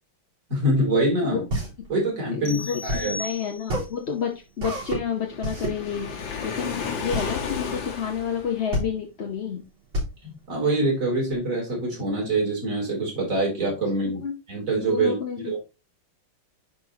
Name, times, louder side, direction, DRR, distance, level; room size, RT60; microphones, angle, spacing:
voice 1, 0.5-1.4 1.9-3.2 10.2-14.2 14.5-15.2 15.4-15.6, right 2 dB, 40° right, -1 dB, 3.5 m, -25 dB
sound 1, 1.4-11.4, equal, 80° right, 4.9 m, -31 dB
voice 2, 2.3-9.6 14.2-14.3 14.9-15.6, left 7 dB, 45° left, 1 dB, 0.9 m, -30 dB
sound 2, 2.5-4.0, left 2 dB, 30° left, 1.5 m, -36 dB
Waves surf, 5.2-8.7, left 5 dB, 70° left, 2.1 m, -33 dB
10.5 x 4.3 x 2.9 m, 0.27 s
omnidirectional pair, 2.2 m